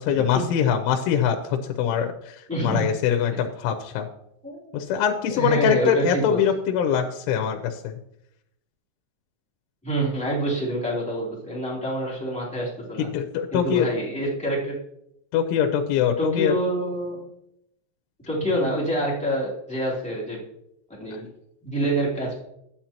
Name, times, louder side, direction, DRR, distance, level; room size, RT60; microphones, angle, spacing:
voice 1, 0.0-2.4 2.6-4.1 4.7-7.9 13.1-13.9 15.3-16.6, left 8 dB, 80° left, 4 dB, 3.1 m, -23 dB
voice 2, 2.5-2.8 4.4-4.8 5.3-6.4 9.8-13.1 13.5-14.7 16.2-17.2 18.2-20.4 21.0-21.3 21.6-22.4, right 1 dB, 5° left, -6 dB, 1.0 m, -26 dB
12.0 x 9.4 x 2.9 m, 0.79 s
omnidirectional pair, 5.6 m